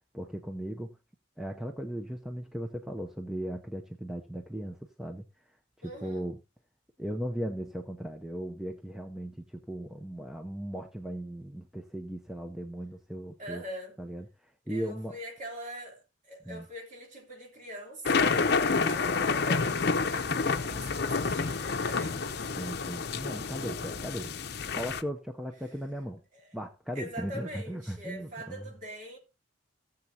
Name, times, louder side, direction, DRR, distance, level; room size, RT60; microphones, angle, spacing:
voice 1, 0.1-1.0 1.4-5.2 5.8-6.4 7.0-13.6 14.0-15.2 16.4-16.7 22.5-24.4 24.7-26.2 26.5-28.7, equal, ahead, 0.7 m, -37 dB
voice 2, 5.8-6.3 13.4-14.0 14.7-22.3 26.3-26.4 26.9-29.2, equal, 40° right, 3.2 m, -43 dB
sound 1, 18.1-25.0, left 4 dB, 55° left, 0.7 m, -29 dB
17.5 x 7.4 x 2.8 m
head